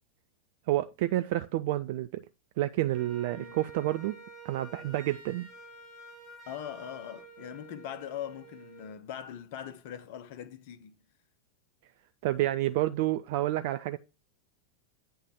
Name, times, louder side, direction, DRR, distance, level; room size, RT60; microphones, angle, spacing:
voice 1, 0.7-2.2 2.6-4.2 4.4-5.5 12.2-14.0, right 15 dB, 50° right, 0.4 m, -29 dB
Wind instrument woodwind instrument, 2.9-9.0, right 3 dB, 10° right, 2.2 m, -49 dB
voice 2, 6.5-11.0, left 10 dB, 50° left, 0.9 m, -41 dB
9.0 x 3.5 x 6.3 m
figure-of-eight pair, 90°, 0 cm